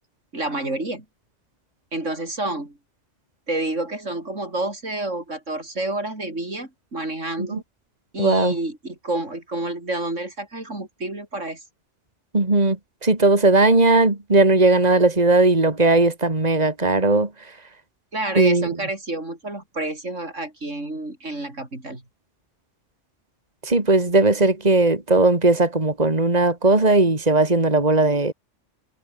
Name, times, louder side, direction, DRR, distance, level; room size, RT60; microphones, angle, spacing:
voice 1, 0.3-1.0 1.9-2.8 3.5-7.6 8.1-11.6 18.1-22.0, right 2 dB, 90° right, 6.3 m, -29 dB
voice 2, 8.2-8.5 12.3-12.8 13.0-17.3 18.4-18.7 23.6-28.3, right 2 dB, 35° right, 3.1 m, -18 dB
omnidirectional pair, 1.2 m